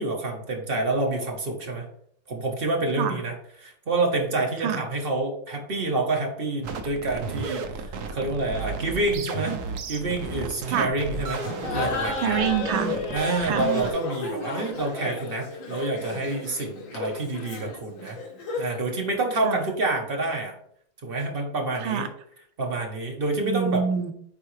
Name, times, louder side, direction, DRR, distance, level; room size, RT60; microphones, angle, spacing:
voice 1, 0.0-1.9 2.3-3.3 3.6-11.5 11.7-12.4 13.1-18.2 18.6-20.5 21.0-22.1 22.6-23.8, right 2 dB, 40° right, 2 dB, 0.8 m, -28 dB
sound 1, 6.6-13.9, right 5 dB, 65° right, 1.1 m, -33 dB
Laughter, 11.4-18.8, left 3 dB, 75° left, 2.0 m, -33 dB
voice 2, 12.2-13.0 13.4-13.7 19.4-19.7 21.8-22.1 23.4-24.1, right 7 dB, 80° right, 8 dB, 1.4 m, -26 dB
9.0 x 3.6 x 3.2 m, 0.66 s
omnidirectional pair, 2.1 m